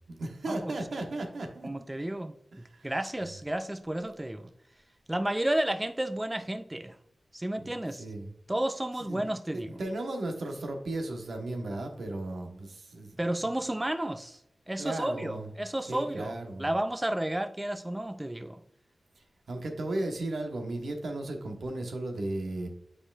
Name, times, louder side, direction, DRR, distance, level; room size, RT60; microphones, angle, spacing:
voice 1, 0.0-1.7 2.5-2.9 7.6-8.3 9.0-9.2 9.7-13.2 14.8-15.5 15.9-16.7 19.2-22.7, right 2 dB, 80° right, 1.2 m, -35 dB
voice 2, 1.6-4.5 5.1-7.0 7.3-8.1 8.5-9.8 13.2-14.4 14.7-18.6, right 1 dB, 15° right, 0.4 m, -32 dB
8.6 x 4.9 x 2.4 m
wide cardioid pair, 85°, 0 cm